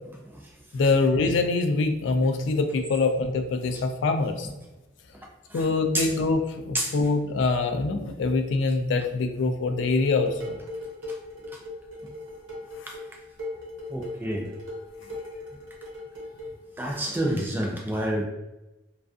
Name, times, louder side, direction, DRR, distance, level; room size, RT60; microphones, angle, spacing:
voice 1, 0.2-0.6 5.5-5.7 5.9-6.1 6.7-7.0 11.1-11.2 11.5-11.6 12.9-13.0 13.9-14.5 16.8-18.2, right 1 dB, 10° right, 0 dB, 0.3 m, -29 dB
voice 2, 0.7-4.5 5.5-10.6, left 3 dB, 70° left, 6 dB, 0.3 m, -24 dB
Dishes pots and pans, 10.0-16.6, left 2 dB, 90° right, 0.9 m, -39 dB
2.3 x 2.3 x 2.4 m, 1.0 s
head